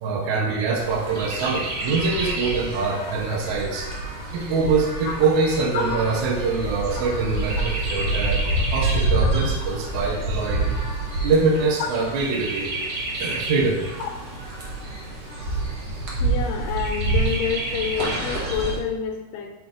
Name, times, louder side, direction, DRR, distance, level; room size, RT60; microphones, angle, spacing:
voice 1, 0.0-3.9 4.3-10.7 11.2-12.7 13.2-13.8, right 4 dB, 70° right, -1 dB, 1.9 m, -24 dB
Chirp tweet, 0.7-18.8, right 2 dB, 85° right, 0.9 m, -27 dB
voice 2, 16.2-19.5, left 7 dB, 80° left, 3 dB, 2.1 m, -28 dB
7.5 x 5.2 x 3.8 m, 1.1 s
omnidirectional pair, 4.4 m